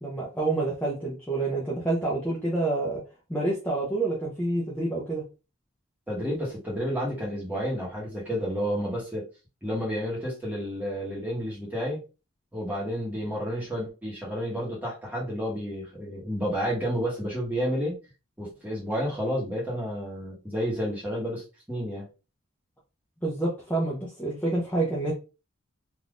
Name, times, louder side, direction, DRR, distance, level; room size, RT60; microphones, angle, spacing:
voice 1, 0.0-3.0 3.3-5.2 23.2-25.1, right 2 dB, 5° left, -6 dB, 0.7 m, -28 dB
voice 2, 6.1-9.3 9.6-12.0 12.5-17.9 18.4-22.1, equal, 10° right, -5 dB, 1.2 m, -30 dB
3.5 x 2.7 x 2.4 m, 0.30 s
head